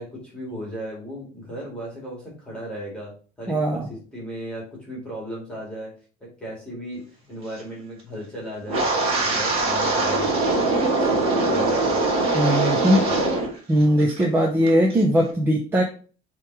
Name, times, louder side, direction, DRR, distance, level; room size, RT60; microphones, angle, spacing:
voice 1, 0.0-5.9 6.2-12.0 12.8-13.2, equal, 5° left, -4 dB, 2.3 m, -36 dB
voice 2, 3.5-3.9 12.3-13.0 13.7-15.8, equal, 15° right, 0 dB, 0.7 m, -20 dB
Wind, 8.7-13.5 13.8-14.2 14.7-14.9, right 2 dB, 35° right, 1.9 m, -22 dB
7.2 x 3.2 x 4.6 m, 0.38 s
cardioid pair, 175°, 17 cm